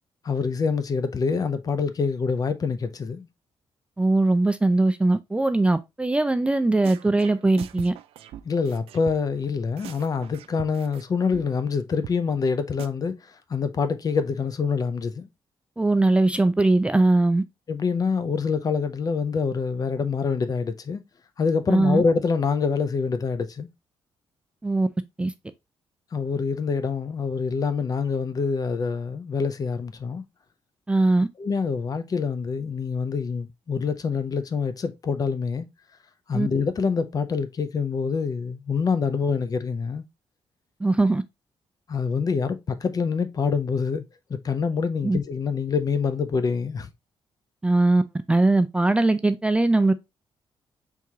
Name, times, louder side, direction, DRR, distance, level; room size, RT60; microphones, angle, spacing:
voice 1, 0.2-3.3 8.4-15.3 17.7-21.0 21.4-23.7 26.1-30.2 31.4-35.7 36.3-40.0 41.9-44.0 44.3-46.9, left 5 dB, 40° left, 0.6 m, -26 dB
voice 2, 4.0-7.9 15.8-17.4 21.7-22.0 24.6-24.9 25.2-25.3 30.9-31.3 36.3-36.5 40.8-41.2 45.0-45.2 47.6-48.0 48.3-49.9, right 2 dB, 10° right, 0.4 m, -20 dB
sound 1, 6.5-6.6 6.8-9.5 9.8-11.0 11.3-11.4 11.7-11.8 12.0-12.2 12.4-12.5 12.8-12.9, right 11 dB, 90° right, 0.4 m, -41 dB
4.6 x 3.5 x 2.8 m
cardioid pair, 105°, 9 cm